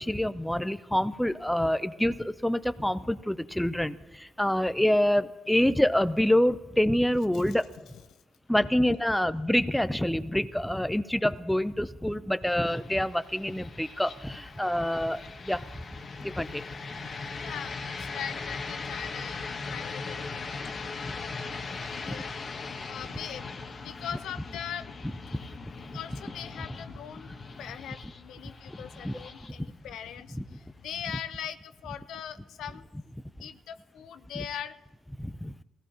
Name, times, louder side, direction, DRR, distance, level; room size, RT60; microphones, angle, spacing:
voice 1, 0.0-7.7 8.5-15.7 16.2-16.6 29.0-29.2 30.3-30.4 35.2-35.5, left 1 dB, 5° left, 12 dB, 0.5 m, -26 dB
sound 1, 12.5-31.4, left 4 dB, 45° left, 1.1 m, -40 dB
voice 2, 17.4-32.8 33.4-34.7, left 9 dB, 80° left, 11 dB, 0.6 m, -41 dB
20.5 x 16.0 x 2.9 m, 1.1 s
cardioid pair, 90°, 0 cm